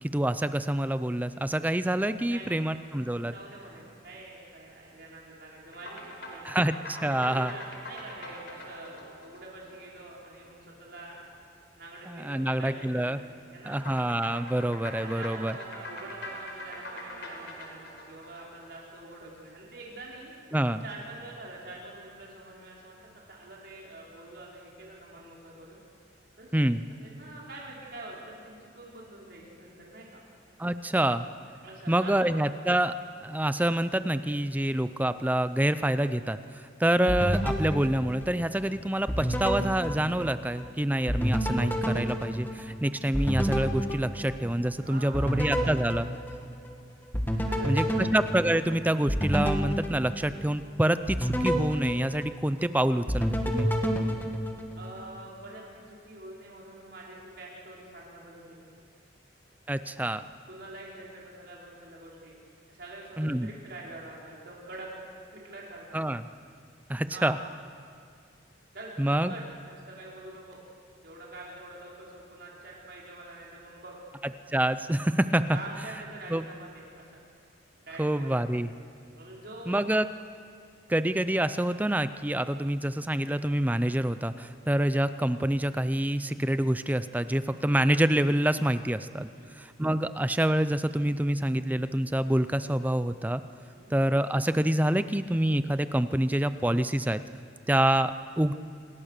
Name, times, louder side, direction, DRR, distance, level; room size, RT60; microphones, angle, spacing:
voice 1, 0.0-3.3 6.4-7.5 12.1-13.2 13.7-15.5 20.5-20.8 26.5-26.9 30.6-31.3 31.9-32.9 33.2-46.1 47.6-53.7 59.7-60.3 63.2-63.5 65.9-66.2 66.9-67.4 69.0-69.3 74.5-75.6 76.3-76.4 78.0-78.7 79.7-80.1 80.9-93.4 93.9-97.2 97.7-98.5, right 1 dB, 10° right, 12 dB, 0.5 m, -27 dB
voice 2, 2.2-6.5 7.0-11.3 11.8-13.8 15.0-20.3 20.8-23.0 23.3-25.8 26.4-30.2 31.6-32.2 44.8-45.7 47.3-48.0 54.8-58.7 60.5-62.3 62.7-64.9 65.3-66.0 67.1-67.4 68.7-70.6 71.0-74.0 75.5-77.2 77.8-78.4 79.1-79.8 89.2-89.5 93.6-93.9, right 2 dB, 60° right, -4 dB, 5.0 m, -45 dB
sound 1, 5.7-10.4 13.7-19.1, equal, 65° left, 4.3 m, -43 dB
sound 2, 37.1-38.7 39.1-40.7 41.1-44.7 45.1-46.7 47.1-50.6 51.1-52.7 53.1-55.0, equal, 10° left, 1.9 m, -30 dB
27.5 x 21.0 x 6.7 m, 2.3 s
head